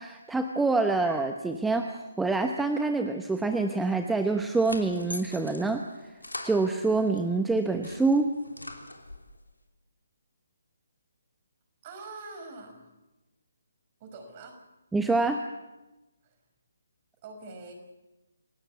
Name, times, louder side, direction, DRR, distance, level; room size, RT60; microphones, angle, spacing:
voice 1, 0.0-6.2 6.4-8.3 14.9-15.4, right 3 dB, 5° right, 6 dB, 1.0 m, -26 dB
sound 1, 4.2-7.3 7.6-9.4, left 1 dB, 90° left, 3.4 m, -43 dB
voice 2, 11.8-12.9 14.0-14.6 16.2-16.3 17.2-17.7, right 3 dB, 30° right, 5 dB, 5.5 m, -44 dB
29.0 x 18.0 x 7.2 m, 1.1 s
figure-of-eight pair, 145°, 0 cm